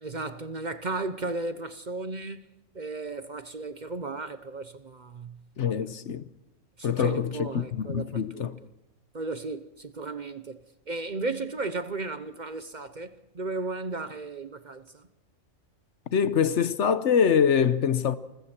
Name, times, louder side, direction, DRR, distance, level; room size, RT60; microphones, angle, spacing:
voice 1, 0.0-2.5 2.7-5.4 5.7-5.8 6.8-8.5 9.1-10.6 10.9-15.1, right 3 dB, 40° right, 0.9 m, -35 dB
voice 2, 5.6-6.3 6.8-8.6 16.1-18.2, left 7 dB, 65° left, 1.2 m, -24 dB
29.0 x 21.0 x 4.4 m
omnidirectional pair, 1.3 m